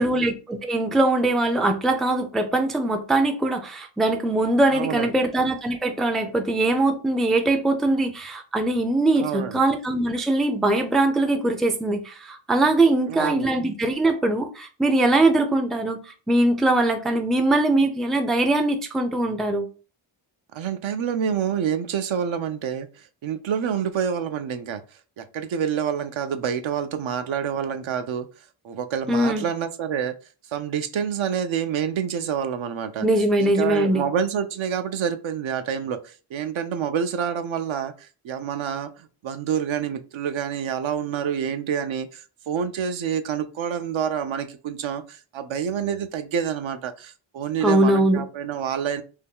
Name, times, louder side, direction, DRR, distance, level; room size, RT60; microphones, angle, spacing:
voice 1, 0.0-16.0 16.3-19.7 29.1-29.5 33.0-34.0 47.6-48.2, right 2 dB, ahead, 0.3 m, -21 dB
voice 2, 4.7-5.2 9.1-9.6 13.1-13.6 20.5-24.8 25.2-28.3 28.6-30.1 30.5-33.1 33.4-49.0, right 8 dB, 70° right, 0.5 m, -28 dB
2.7 x 2.2 x 3.5 m
wide cardioid pair, 75°, 50 cm